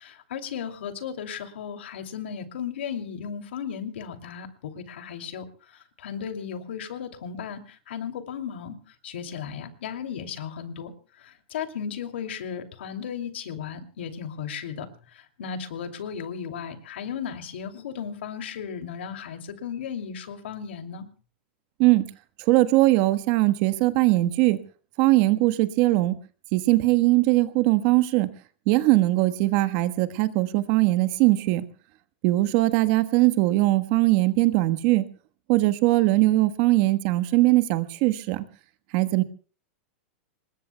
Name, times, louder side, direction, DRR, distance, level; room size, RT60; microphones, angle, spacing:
voice 1, 0.0-21.1, left 7 dB, 80° left, 5 dB, 2.8 m, -35 dB
voice 2, 22.4-24.6 25.0-26.2 26.5-28.3 28.7-31.6 32.2-35.1 35.5-38.4 38.9-39.2, right 18 dB, 45° right, 11 dB, 1.3 m, -21 dB
27.0 x 21.0 x 2.3 m, 0.39 s
supercardioid pair, 145°, 6 cm